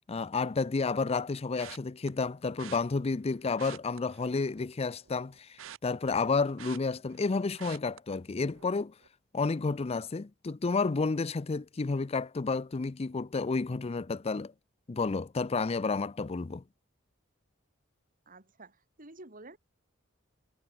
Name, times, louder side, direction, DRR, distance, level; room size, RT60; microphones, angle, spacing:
voice 1, 0.1-8.9 9.3-14.5 14.9-16.6, left 4 dB, 30° left, 0.5 m, -31 dB
sound 1, 1.6-2.1 2.6-2.8 3.5-4.7 5.0-7.3 7.6-8.0 8.5-8.7 9.0-9.1, right 10 dB, 80° right, 0.6 m, -48 dB
voice 2, 18.3-19.6, right 2 dB, 45° right, 5.8 m, -50 dB
head